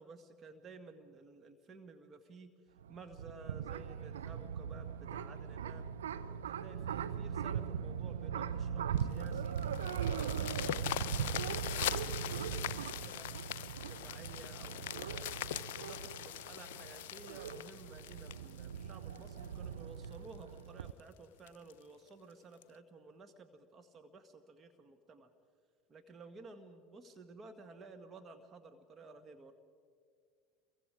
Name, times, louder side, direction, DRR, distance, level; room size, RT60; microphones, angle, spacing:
voice 1, 0.0-5.9 6.3-13.3 13.9-15.3 15.8-25.3 25.9-29.5, right 3 dB, 35° right, 6 dB, 1.7 m, -54 dB
sound 1, 2.8-20.9, right 8 dB, 80° right, 0.7 m, -40 dB
sound 2, 9.0-19.5 20.0-20.1 20.6-20.7 21.0-21.1 21.5-21.7 22.6-22.7, left 11 dB, 70° left, 0.7 m, -41 dB
29.5 x 23.0 x 5.0 m, 2.1 s
hypercardioid pair, 75°, 0 cm